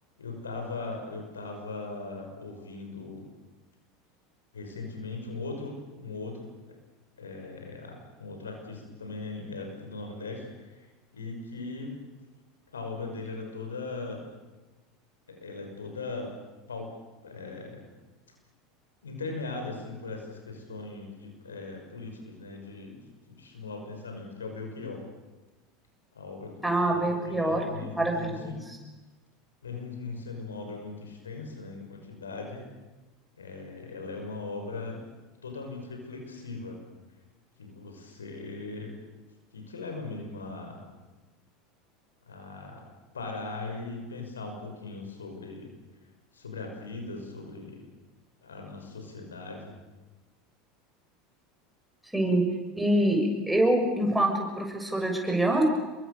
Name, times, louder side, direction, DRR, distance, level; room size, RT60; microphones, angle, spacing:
voice 1, 0.2-3.3 4.5-6.8 7.2-10.9 11.1-12.0 12.7-14.3 15.3-16.3 16.7-16.9 17.2-17.8 19.0-23.0 23.3-25.0 26.1-28.6 29.6-32.6 33.4-35.0 35.4-36.8 37.6-38.9 39.5-40.8 42.3-42.9 43.1-45.7 46.3-47.9 48.4-49.7, left 3 dB, 85° left, 3 dB, 6.0 m, -39 dB
voice 2, 26.6-27.6 28.0-28.8 52.1-52.5 52.8-55.6, right 1 dB, 5° right, 2 dB, 6.6 m, -25 dB
28.5 x 23.0 x 6.9 m, 1.2 s
figure-of-eight pair, 80°, 0 cm